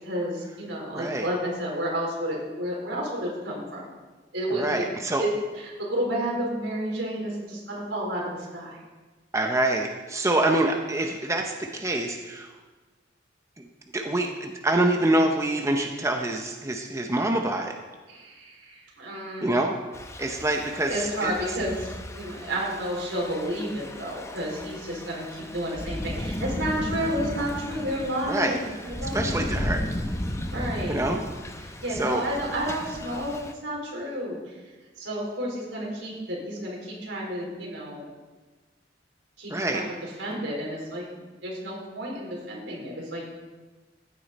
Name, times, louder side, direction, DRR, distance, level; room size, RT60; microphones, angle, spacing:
voice 1, 0.0-3.8 4.3-4.8 5.2-5.3 5.6-8.8 18.1-19.6 20.8-21.9 22.1-29.7 30.5-31.0 31.6-33.3 33.6-34.5 35.0-38.1 39.4-41.1 41.4-43.2, equal, 80° right, -3 dB, 4.1 m, -31 dB
voice 2, 0.9-1.3 4.5-5.2 9.3-12.5 13.6-13.7 13.9-17.8 19.4-19.7 20.2-21.3 28.3-28.6 29.1-29.9 30.9-31.2 31.9-32.2 39.5-39.8, right 1 dB, 15° right, 3 dB, 0.7 m, -26 dB
Thunder / Rain, 19.9-33.5, left 1 dB, 15° left, 0.7 m, -35 dB
14.5 x 9.3 x 4.2 m, 1.3 s
head